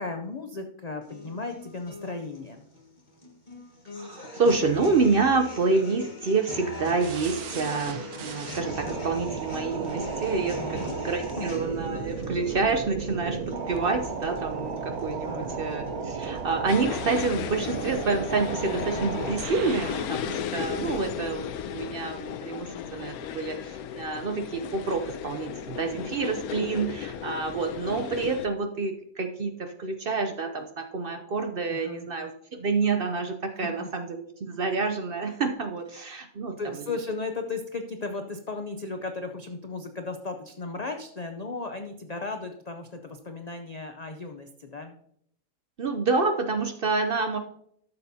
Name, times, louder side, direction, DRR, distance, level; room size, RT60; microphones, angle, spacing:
voice 1, 0.0-2.6 10.5-11.0 11.4-11.5 15.2-15.7 31.7-32.1 33.6-33.9 34.5-34.6 36.6-44.9, left 3 dB, 65° left, 5 dB, 0.4 m, -36 dB
sound 1, 1.0-17.0, left 2 dB, 30° left, 1.5 m, -41 dB
voice 2, 3.9-36.6 45.8-47.4, right 4 dB, 55° right, 6 dB, 0.6 m, -28 dB
sound 2, 7.0-20.1, right 5 dB, 85° right, 1.3 m, -35 dB
sound 3, 16.7-28.5, left 9 dB, 85° left, 1.1 m, -35 dB
13.0 x 6.9 x 2.7 m, 0.70 s
omnidirectional pair, 1.5 m